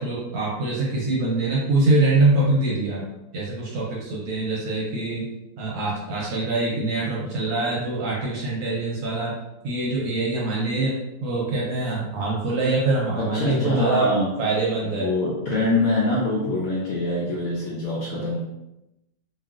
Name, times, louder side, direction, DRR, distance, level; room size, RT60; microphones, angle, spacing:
voice 1, 0.0-3.0 3.3-5.2 5.6-9.3 9.6-14.1 14.4-15.1, right 2 dB, 65° right, -4 dB, 1.0 m, -24 dB
voice 2, 13.3-14.3 14.8-18.4, left 2 dB, 70° left, -5 dB, 0.9 m, -24 dB
3.1 x 2.5 x 2.4 m, 0.93 s
omnidirectional pair, 2.0 m